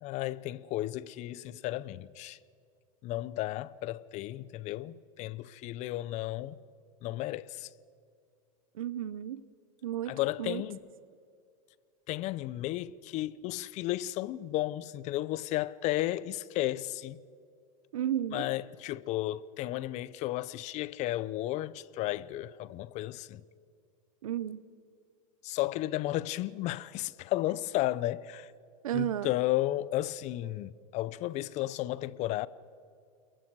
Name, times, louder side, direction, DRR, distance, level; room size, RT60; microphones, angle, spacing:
voice 1, 0.0-2.4 3.0-6.6 7.0-7.7 10.1-10.8 12.1-17.2 18.3-23.4 25.4-28.5 28.9-32.5, left 15 dB, 40° left, 0.7 m, -33 dB
voice 2, 8.8-9.4 9.8-10.1 10.4-10.6 17.9-18.5 24.2-24.6 28.8-29.3, right 11 dB, 90° right, 0.8 m, -32 dB
28.5 x 22.5 x 4.8 m
supercardioid pair, 125°, 17 cm